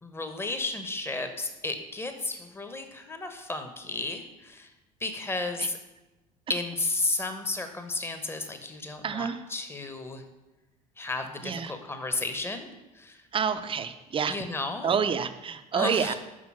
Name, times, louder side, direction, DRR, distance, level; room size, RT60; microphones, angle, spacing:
voice 1, 0.0-4.7 5.0-5.8 6.5-10.2 11.0-12.7 12.9-13.2 14.3-14.9 15.7-16.2, left 2 dB, 10° left, 7 dB, 1.0 m, -33 dB
voice 2, 9.0-9.4 11.4-11.7 13.3-14.4 14.8-16.1, right 6 dB, 25° right, 10 dB, 0.6 m, -28 dB
6.1 x 5.5 x 6.0 m, 1.0 s
figure-of-eight pair, 60°, 19 cm